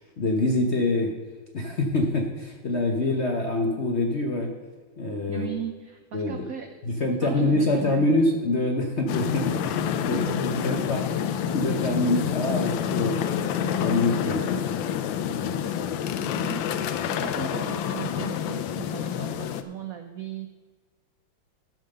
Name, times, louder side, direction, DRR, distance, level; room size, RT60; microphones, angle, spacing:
voice 1, 0.2-1.1 1.5-4.5 5.0-5.5 6.1-6.4 6.8-11.0 11.5-13.2 13.8-14.4 15.4-15.5, left 2 dB, 50° left, 2 dB, 0.8 m, -25 dB
voice 2, 5.3-8.1 10.1-10.4 14.4-14.9 16.2-16.7 17.1-20.5, right 9 dB, 75° right, 6 dB, 0.8 m, -38 dB
sound 1, 9.1-19.6, left 8 dB, 75° left, 1.3 m, -28 dB
12.5 x 5.6 x 6.5 m, 1.4 s
omnidirectional pair, 2.3 m